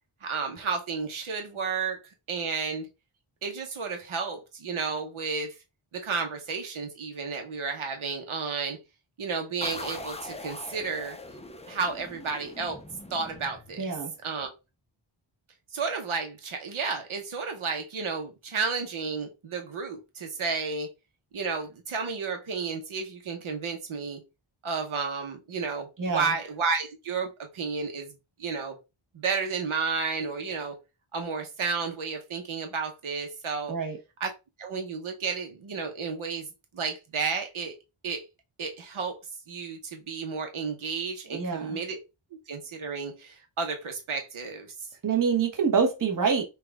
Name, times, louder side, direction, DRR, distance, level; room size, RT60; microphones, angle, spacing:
voice 1, 0.2-2.0 2.3-2.9 3.4-5.5 5.9-8.8 9.2-11.2 11.7-12.8 13.1-13.8 14.2-14.5 15.7-20.9 21.3-24.2 24.6-28.1 28.4-28.8 29.1-30.7 31.1-33.7 34.2-34.3 34.6-36.5 36.7-37.7 38.0-38.2 38.6-39.1 39.5-42.0 42.5-44.7, right 5 dB, 75° right, 1.0 m, -32 dB
sound 1, 9.6-14.1, left 2 dB, 15° left, 0.5 m, -42 dB
voice 2, 13.8-14.1 26.0-26.3 33.7-34.0 41.3-41.8 45.0-46.4, right 6 dB, 40° right, 1.1 m, -26 dB
5.8 x 2.3 x 3.4 m
wide cardioid pair, 120°, 50 cm